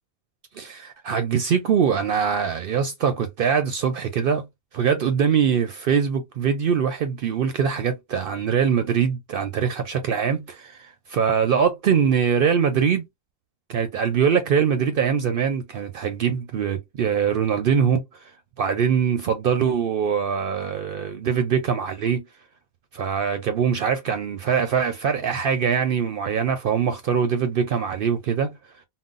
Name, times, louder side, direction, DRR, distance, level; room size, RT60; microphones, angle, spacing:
voice 1, 0.6-4.5 4.7-13.0 13.7-18.3 18.6-22.2 22.9-28.6, right 7 dB, 65° right, 0.7 m, -23 dB
3.7 x 2.0 x 2.4 m
omnidirectional pair, 1.1 m